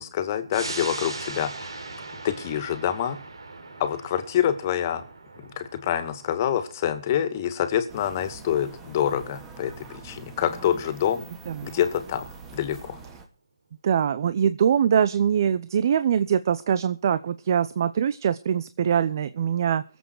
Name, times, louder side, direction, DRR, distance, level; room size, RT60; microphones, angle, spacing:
voice 1, 0.0-1.8 2.2-3.2 3.8-5.0 5.6-11.2 11.6-13.0, left 10 dB, 35° left, 10 dB, 2.2 m, -26 dB
sound 1, 0.5-11.5 11.9-12.0, right 3 dB, 75° right, 4.0 m, -41 dB
sound 2, 7.9-13.3, right 4 dB, 15° right, 2.9 m, -44 dB
voice 2, 11.5-11.8 13.8-19.8, right 8 dB, 45° right, 13 dB, 0.8 m, -23 dB
23.0 x 8.1 x 4.9 m, 0.36 s
figure-of-eight pair, 150°, 3 cm